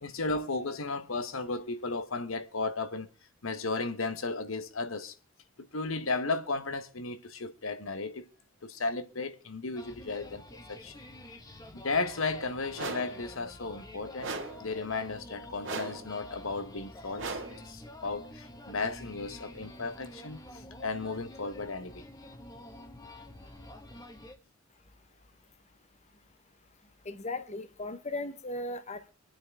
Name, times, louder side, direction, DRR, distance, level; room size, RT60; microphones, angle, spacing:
voice 1, 0.0-3.1 3.4-5.1 5.6-8.3 8.6-10.9 11.7-14.3 14.6-17.4 17.6-22.0, left 3 dB, 75° left, 1.1 m, -34 dB
sound 1, 9.8-24.4, left 1 dB, 20° left, 1.5 m, -48 dB
sound 2, 12.8-13.2 14.2-14.7 15.6-16.1 17.2-17.7, right 3 dB, 65° right, 2.0 m, -37 dB
voice 2, 27.0-29.1, left 2 dB, 35° left, 1.0 m, -37 dB
25.0 x 9.1 x 3.5 m
head